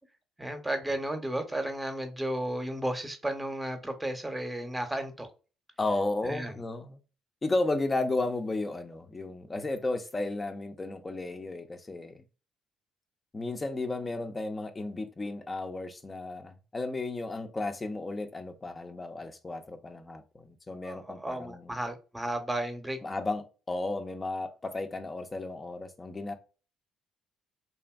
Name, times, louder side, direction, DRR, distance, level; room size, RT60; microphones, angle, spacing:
voice 1, 0.4-5.3 6.2-6.5 20.8-23.0, right 1 dB, 15° right, 0.7 m, -33 dB
voice 2, 5.8-7.0 7.4-12.2 13.3-21.7 23.0-26.3, left 2 dB, 30° left, 0.5 m, -33 dB
2.8 x 2.5 x 2.3 m
supercardioid pair, 60°, 0 cm